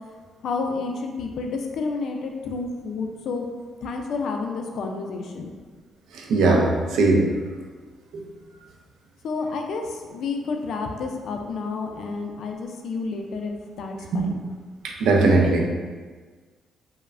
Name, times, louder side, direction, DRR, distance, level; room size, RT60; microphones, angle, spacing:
voice 1, 0.4-3.5 3.8-5.5 9.2-14.4, left 4 dB, 70° left, 3 dB, 0.3 m, -30 dB
voice 2, 6.1-6.7 6.9-7.3 14.1-14.2 15.0-15.6, right 3 dB, 80° right, 1 dB, 0.4 m, -18 dB
3.1 x 2.0 x 2.4 m, 1.5 s
cardioid pair, 90°, 0 cm